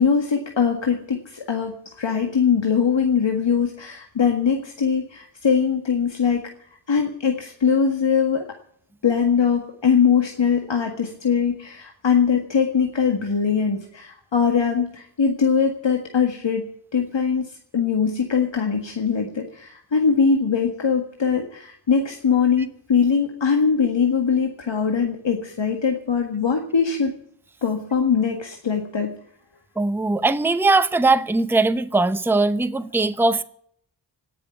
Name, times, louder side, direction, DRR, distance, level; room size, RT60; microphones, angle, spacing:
voice 1, 0.0-6.5 6.9-8.5 9.0-27.1 27.6-29.1, left 6 dB, 70° left, 3 dB, 1.9 m, -21 dB
voice 2, 29.8-33.4, right 3 dB, 5° right, 11 dB, 0.8 m, -20 dB
18.0 x 7.0 x 9.7 m, 0.63 s
wide cardioid pair, 70°, 45 cm